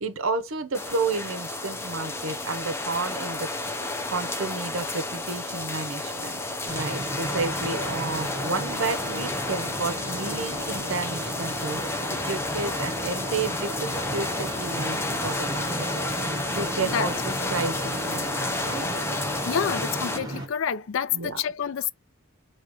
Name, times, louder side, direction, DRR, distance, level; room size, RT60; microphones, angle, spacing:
voice 1, 0.0-3.5 4.1-12.0 12.2-16.1 16.6-17.1 17.5-18.9 21.1-21.4, right 3 dB, 65° right, 0.7 m, -31 dB
sound 1, 0.7-20.2, left 2 dB, 10° left, 0.6 m, -31 dB
sound 2, 6.7-20.5, right 1 dB, 20° right, 1.3 m, -35 dB
voice 2, 19.5-21.9, left 8 dB, 65° left, 0.4 m, -28 dB
4.8 x 2.9 x 2.9 m
head